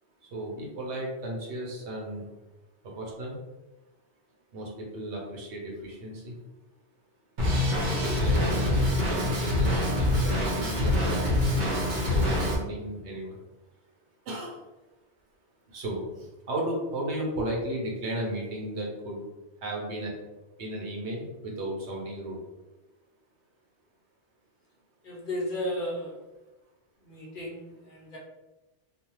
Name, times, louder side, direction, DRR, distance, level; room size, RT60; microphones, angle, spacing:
voice 1, 0.3-2.3 2.8-3.4 4.5-6.3 7.9-8.8 9.1-11.2 11.9-13.4 14.3-14.6 15.7-19.2 19.6-20.1 20.6-22.4, right 1 dB, 75° right, -1 dB, 1.0 m, -34 dB
Drum kit, 7.4-12.5, left 1 dB, 50° right, 0.7 m, -25 dB
voice 2, 25.0-26.2 27.0-28.2, equal, 55° left, -3 dB, 0.7 m, -34 dB
2.5 x 2.2 x 2.9 m, 1.0 s
omnidirectional pair, 1.2 m